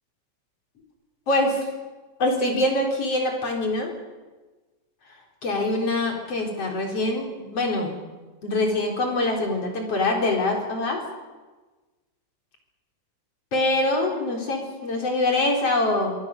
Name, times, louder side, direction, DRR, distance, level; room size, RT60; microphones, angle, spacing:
voice 1, 1.3-1.6 2.2-3.9 5.4-8.0 8.4-11.0 13.5-16.2, left 2 dB, 30° left, 1 dB, 4.7 m, -24 dB
25.0 x 23.0 x 6.8 m, 1.2 s
omnidirectional pair, 5.9 m